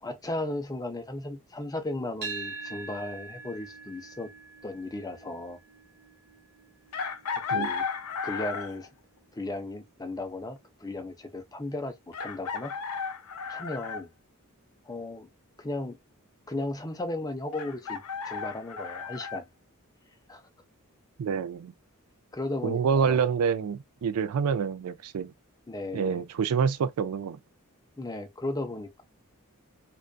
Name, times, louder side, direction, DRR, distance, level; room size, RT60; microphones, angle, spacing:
voice 1, 0.0-4.3 4.6-5.6 7.5-7.8 8.2-8.9 9.3-12.7 13.5-14.1 14.9-15.3 15.6-16.0 16.5-19.5 20.3-20.4 22.3-23.2 25.7-26.2 28.0-29.0, left 2 dB, 15° left, 0.5 m, -35 dB
sound 1, 2.2-10.4, right 4 dB, 50° right, 1.1 m, -45 dB
Chicken rooster, 6.9-8.9 10.6-10.7 12.1-14.0 17.5-19.4, left 5 dB, 80° left, 0.5 m, -34 dB
voice 2, 21.2-21.7 22.6-25.3 25.9-27.4, right 6 dB, 85° right, 0.4 m, -27 dB
2.5 x 2.2 x 2.2 m
head